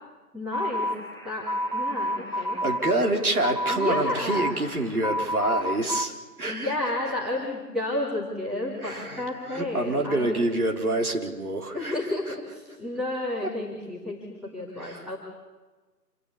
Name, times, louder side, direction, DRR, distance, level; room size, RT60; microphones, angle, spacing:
voice 1, 0.3-0.9 1.2-2.6 3.7-4.5 6.5-10.5 11.7-15.2, left 2 dB, ahead, -7 dB, 1.7 m, -31 dB
sound 1, 0.5-6.0, left 1 dB, 15° left, 0.8 m, -30 dB
voice 2, 2.6-6.7 8.8-12.1 14.8-15.1, right 2 dB, 60° right, 2 dB, 3.9 m, -27 dB
26.5 x 17.0 x 9.7 m, 1.3 s
figure-of-eight pair, 150°, 49 cm